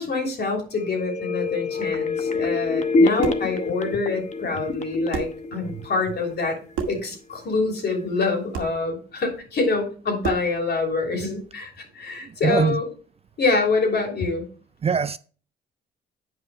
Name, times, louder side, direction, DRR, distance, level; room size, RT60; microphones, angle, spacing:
voice 1, 0.0-6.6 6.9-12.9 13.4-14.4, left 3 dB, 55° left, 3.1 m, -26 dB
sound 1, 0.8-6.4 6.8-6.9, left 3 dB, 35° left, 0.9 m, -26 dB
sound 2, 2.9-3.5 4.7-4.8 5.1-5.4 6.7-7.1 8.5-8.8 10.2-10.6, right 7 dB, 80° right, 1.3 m, -30 dB
voice 2, 12.2-12.8 14.8-15.2, right 6 dB, 30° right, 0.4 m, -22 dB
9.1 x 5.3 x 4.6 m
cardioid pair, 90°, 20 cm